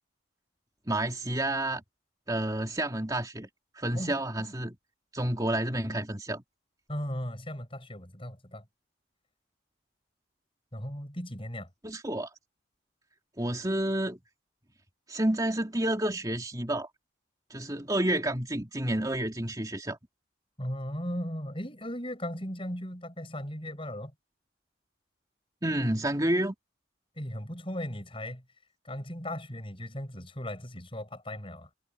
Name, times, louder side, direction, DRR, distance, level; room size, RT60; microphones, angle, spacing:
voice 1, 0.9-1.8 2.3-3.5 3.7-4.8 5.1-6.4 11.8-12.3 13.4-14.2 15.1-16.9 17.5-20.0 25.6-26.5, right 1 dB, 20° right, 3.0 m, -29 dB
voice 2, 3.9-4.5 6.9-8.7 10.7-11.7 20.6-24.1 27.2-28.4 28.8-31.7, equal, 25° left, 7.2 m, -37 dB
head